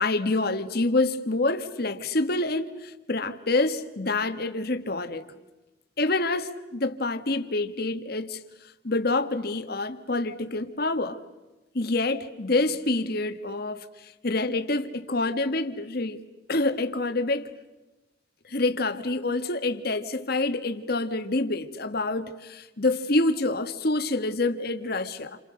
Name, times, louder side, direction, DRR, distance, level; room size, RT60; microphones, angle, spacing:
voice 1, 0.0-5.2 6.0-8.4 8.8-11.2 11.7-16.2 16.5-17.5 18.5-25.4, left 2 dB, 55° left, 1.7 m, -27 dB
29.5 x 29.0 x 6.5 m
head